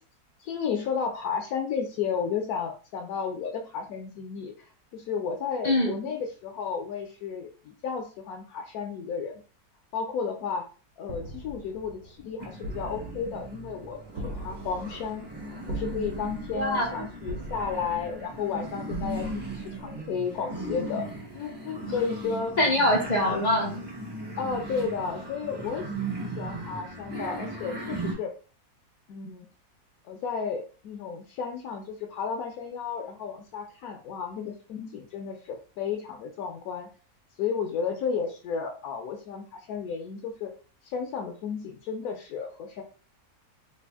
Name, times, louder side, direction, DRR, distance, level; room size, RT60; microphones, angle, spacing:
voice 1, 0.4-4.5 4.9-9.4 9.9-10.6 11.0-15.3 15.7-21.1 21.3-22.6 23.2-23.4 24.4-25.8 26.2-28.3 29.1-29.5 30.0-36.9 37.4-40.5 40.8-42.8, left 6 dB, 70° left, 2 dB, 1.0 m, -33 dB
voice 2, 5.6-5.9 16.5-17.1 21.8-21.9 22.6-23.8, left 1 dB, 45° left, 1 dB, 0.6 m, -24 dB
sound 1, 11.0-20.4, right 1 dB, 60° right, 1.4 m, -41 dB
sound 2, 12.4-28.1, right 2 dB, 20° right, 0.7 m, -38 dB
3.4 x 2.4 x 3.5 m, 0.38 s
omnidirectional pair, 1.7 m